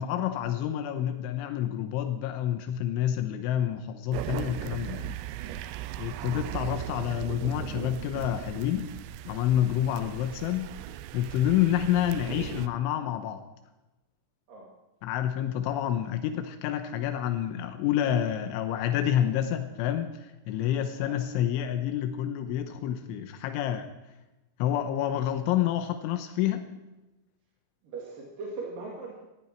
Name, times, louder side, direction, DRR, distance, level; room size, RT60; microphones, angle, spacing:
voice 1, 0.0-5.2 6.0-8.9 9.3-10.7 11.1-13.4 15.0-23.9 24.6-26.7, left 11 dB, 90° left, 8 dB, 3.3 m, -28 dB
sound 1, 4.1-12.7, right 14 dB, 85° right, 2.4 m, -38 dB
voice 2, 27.8-29.2, right 3 dB, 50° right, -2 dB, 3.5 m, -40 dB
18.0 x 14.5 x 4.5 m, 1.0 s
omnidirectional pair, 5.5 m